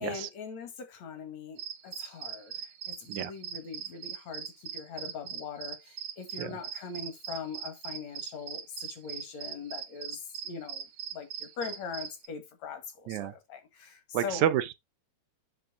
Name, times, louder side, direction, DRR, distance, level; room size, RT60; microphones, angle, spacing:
voice 1, 0.0-10.2 10.4-10.9 11.1-14.4, left 6 dB, 70° left, 3.0 m, -41 dB
sound 1, 1.6-12.3, right 9 dB, 65° right, 2.0 m, -41 dB
voice 2, 14.1-14.7, right 11 dB, 90° right, 2.2 m, -29 dB
10.5 x 3.7 x 3.7 m
omnidirectional pair, 3.3 m